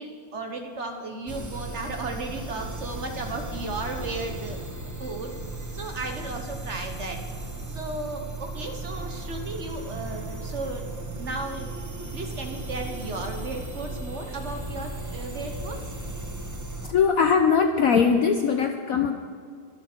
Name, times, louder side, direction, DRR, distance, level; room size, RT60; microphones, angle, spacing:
voice 1, 0.0-4.6 5.0-5.3 5.7-7.2 7.7-10.9 11.2-15.8, right 2 dB, 45° right, 4 dB, 1.0 m, -35 dB
sound 1, 1.3-16.9, right 2 dB, 25° right, 0.3 m, -36 dB
voice 2, 16.9-19.1, left 6 dB, 65° left, 6 dB, 0.9 m, -21 dB
22.5 x 7.9 x 4.4 m, 2.1 s
omnidirectional pair, 2.1 m